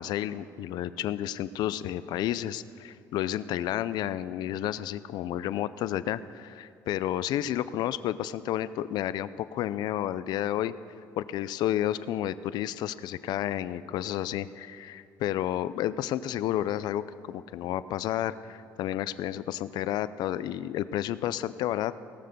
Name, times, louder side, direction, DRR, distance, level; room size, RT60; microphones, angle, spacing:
voice 1, 0.0-10.7 11.2-21.9, left 12 dB, 70° left, 15 dB, 0.4 m, -31 dB
18.0 x 6.8 x 6.6 m, 2.4 s
cardioid pair, 130°, 7 cm